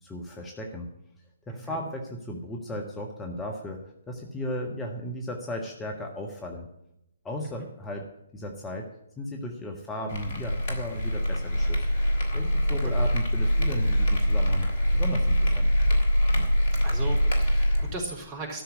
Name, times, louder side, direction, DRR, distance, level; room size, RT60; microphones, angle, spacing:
voice 1, 0.0-0.9 1.5-6.7 7.2-8.0 8.3-8.9 9.2-11.9 12.3-14.7 14.9-15.7, left 1 dB, 10° left, 1 dB, 1.5 m, -36 dB
sound 1, 10.1-17.9, equal, 45° left, 3.3 m, -24 dB
voice 2, 16.8-18.6, right 3 dB, 30° right, 2 dB, 3.9 m, -37 dB
13.0 x 6.7 x 9.6 m, 0.80 s
figure-of-eight pair, 130°, 0 cm